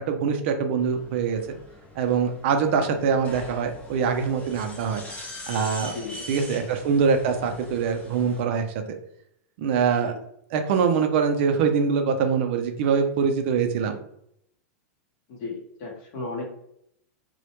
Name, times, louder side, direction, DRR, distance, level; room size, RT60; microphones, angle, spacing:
voice 1, 0.1-1.6 2.0-5.0 5.5-6.0 6.3-9.0 9.6-10.1 10.5-14.0, right 6 dB, 50° right, 6 dB, 0.4 m, -24 dB
sound 1, 0.8-8.4, left 1 dB, 15° left, 0.5 m, -42 dB
voice 2, 5.8-6.2 10.0-10.2 15.3-16.5, left 3 dB, 40° left, -1 dB, 0.8 m, -35 dB
2.1 x 2.1 x 2.8 m, 0.72 s
supercardioid pair, 160°, 8 cm